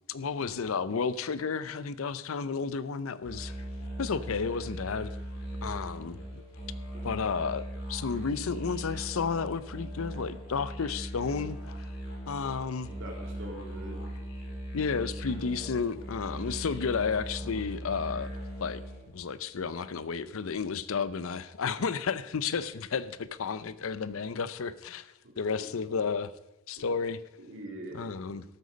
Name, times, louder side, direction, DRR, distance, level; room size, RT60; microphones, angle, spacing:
voice 1, 0.1-3.5 4.0-5.1 5.6-6.2 7.0-11.9 12.3-12.9 14.7-18.3 18.6-18.8 19.1-25.1 25.4-26.3 26.7-27.2 27.9-28.4, left 5 dB, 70° left, 0.6 m, -32 dB
sound 1, 3.2-19.1, equal, 85° left, 3.5 m, -39 dB
voice 2, 12.9-14.0 25.2-25.7 25.9-26.0 26.8-26.9 27.4-28.1, right 1 dB, 65° right, 2.5 m, -43 dB
13.5 x 8.1 x 5.2 m
head